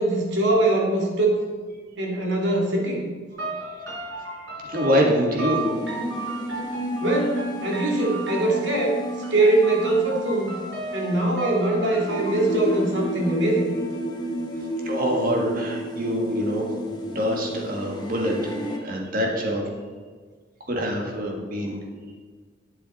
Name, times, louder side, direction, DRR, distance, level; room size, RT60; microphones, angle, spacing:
voice 1, 0.0-1.4 2.0-3.0 7.0-9.0 9.3-10.6 10.9-13.7, right 2 dB, 70° right, -1 dB, 2.3 m, -22 dB
sound 1, 3.3-12.4, right 2 dB, 85° right, 3.3 m, -34 dB
voice 2, 4.6-5.6 14.8-16.6 17.0-18.5 18.8-19.6 20.7-21.8, equal, 50° right, 0 dB, 1.8 m, -25 dB
sound 2, 5.5-18.8, equal, 20° left, 1.1 m, -32 dB
11.0 x 8.5 x 4.2 m, 1.6 s
head